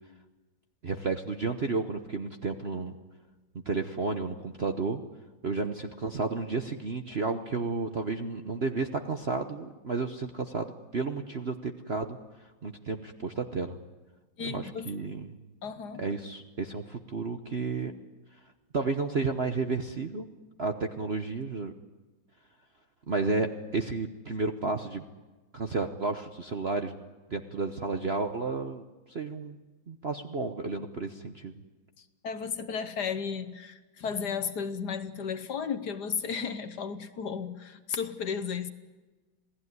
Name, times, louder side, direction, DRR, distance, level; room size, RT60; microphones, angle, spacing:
voice 1, 0.8-2.9 3.6-5.0 5.4-12.2 12.6-13.8 14.4-15.4 16.0-17.9 18.7-20.3 20.6-21.7 23.1-25.1 25.5-27.0 27.3-28.8 29.1-29.6 29.9-31.6, right 3 dB, 40° right, 0.9 m, -32 dB
voice 2, 14.4-14.9 15.6-16.0 32.0-38.7, left 6 dB, 60° left, 1.5 m, -34 dB
27.5 x 17.5 x 9.6 m
omnidirectional pair, 2.2 m